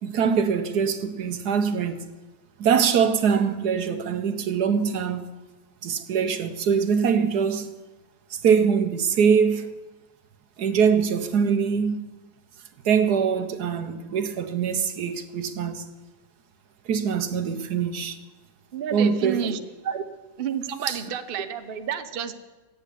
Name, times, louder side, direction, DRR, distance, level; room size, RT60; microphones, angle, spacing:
voice 1, 0.0-2.1 2.6-5.2 5.8-7.7 8.3-9.7 10.6-12.0 12.8-15.9 16.9-18.2 18.9-19.5 19.9-20.0 20.9-21.0, right 6 dB, 70° right, 1.5 m, -23 dB
voice 2, 18.7-19.6 20.4-22.3, right 8 dB, 40° right, 1.0 m, -30 dB
15.5 x 8.4 x 9.9 m
omnidirectional pair, 1.8 m